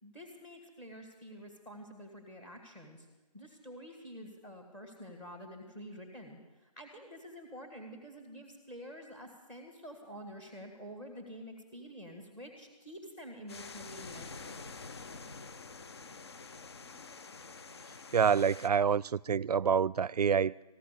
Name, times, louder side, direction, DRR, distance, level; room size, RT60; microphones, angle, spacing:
voice 1, 0.0-3.1 3.3-14.6, equal, 5° left, 1.6 m, -48 dB
sound 1, 13.5-18.7, left 4 dB, 40° left, 0.8 m, -47 dB
voice 2, 18.1-20.6, right 7 dB, 70° right, 0.4 m, -27 dB
15.0 x 12.0 x 6.6 m
hypercardioid pair, 170°, 21 cm